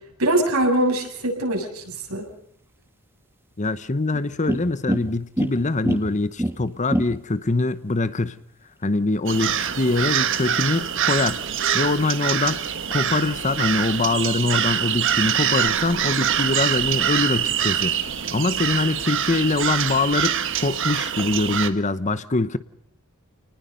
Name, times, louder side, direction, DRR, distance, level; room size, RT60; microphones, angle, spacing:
voice 1, 0.2-2.3, right 1 dB, 75° right, 7.5 m, -22 dB
sound 1, 1.7-21.5, equal, 10° right, 2.1 m, -35 dB
voice 2, 3.6-8.4 8.8-11.4 11.7-12.6 12.9-18.0 18.3-22.6, left 3 dB, 35° left, 0.9 m, -23 dB
sound 2, 9.3-21.7, right 9 dB, 60° right, 1.5 m, -24 dB
29.0 x 19.5 x 5.4 m
head